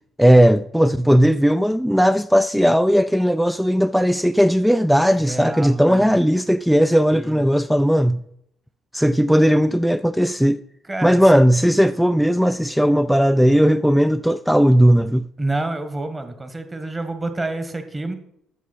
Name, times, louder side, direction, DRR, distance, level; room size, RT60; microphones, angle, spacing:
voice 1, 0.2-8.2 8.9-10.6 11.0-15.3, equal, ahead, 0.3 m, -17 dB
voice 2, 4.9-6.2 7.1-7.4 10.9-11.2 15.4-18.1, right 2 dB, 20° right, 1.6 m, -28 dB
12.0 x 6.6 x 4.3 m
figure-of-eight pair, 45°, 0 cm